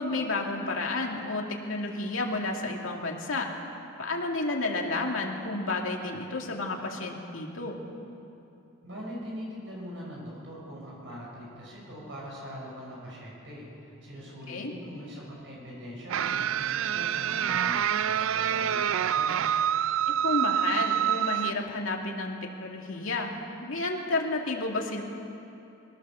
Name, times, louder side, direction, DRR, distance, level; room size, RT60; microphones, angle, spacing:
voice 1, 0.0-3.5 4.0-7.8 14.5-14.7 20.1-23.3 23.6-25.0, left 2 dB, 90° left, 0 dB, 2.4 m, -31 dB
voice 2, 8.8-18.8 19.1-19.4, equal, 65° right, -4 dB, 6.5 m, -42 dB
sound 1, 16.1-21.5, right 10 dB, 85° right, 0.4 m, -27 dB
22.0 x 17.0 x 7.0 m, 2.9 s
head